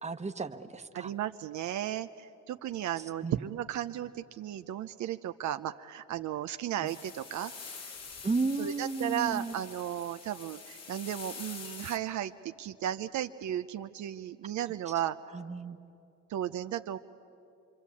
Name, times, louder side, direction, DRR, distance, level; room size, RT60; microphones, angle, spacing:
voice 1, 0.0-1.1 3.2-3.3 8.2-9.6 15.3-15.8, right 3 dB, 20° right, 7 dB, 1.2 m, -33 dB
voice 2, 0.9-7.5 8.6-15.2 16.3-17.0, right 11 dB, 70° right, 9 dB, 0.7 m, -35 dB
sound 1, 6.9-12.0, left 5 dB, 55° left, 2.0 m, -46 dB
27.0 x 24.5 x 8.4 m, 2.7 s
cardioid pair, 90°, 30 cm